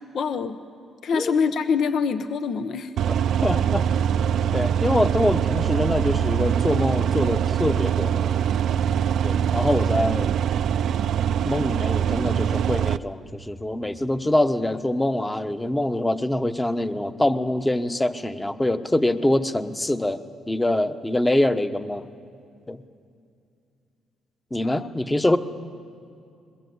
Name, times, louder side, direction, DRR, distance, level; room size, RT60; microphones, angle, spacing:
voice 1, 0.1-0.6 1.0-2.9 24.6-24.9, left 6 dB, 65° left, 10 dB, 0.9 m, -25 dB
sound 1, 3.0-13.0, right 9 dB, 70° right, 0.5 m, -23 dB
voice 2, 3.4-3.9 4.5-8.4 9.2-10.3 11.4-20.2 20.5-22.1 22.7-22.8 24.5-25.4, left 1 dB, 10° left, 10 dB, 1.0 m, -24 dB
21.5 x 21.5 x 8.0 m, 2.5 s
cardioid pair, 90°, 0 cm